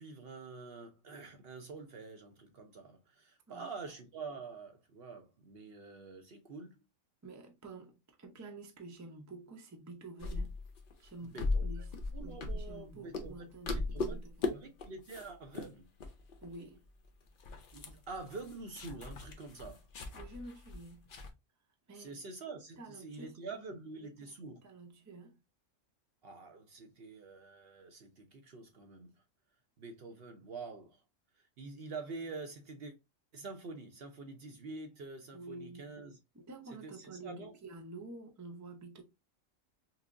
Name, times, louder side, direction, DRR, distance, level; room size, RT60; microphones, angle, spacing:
voice 1, 0.0-6.8 11.2-11.8 12.1-14.2 14.5-15.9 17.7-19.9 21.9-24.6 26.2-29.1 29.8-31.0 31.4-32.9 33.3-36.2 36.8-37.5, right 4 dB, 55° right, 0.8 m, -47 dB
voice 2, 7.2-10.5 11.0-14.5 16.4-16.8 20.1-21.0 21.9-22.3 22.8-23.4 24.0-24.3 24.6-25.4 35.3-36.0 36.3-39.0, right 3 dB, 20° right, 0.5 m, -49 dB
sound 1, 10.2-12.9 13.1-13.4 13.7-14.5 14.8-15.3 15.5-15.7 16.0-16.6 16.8-16.9 17.3-21.3, left 3 dB, 50° left, 0.7 m, -38 dB
5.6 x 2.0 x 2.5 m
omnidirectional pair, 1.4 m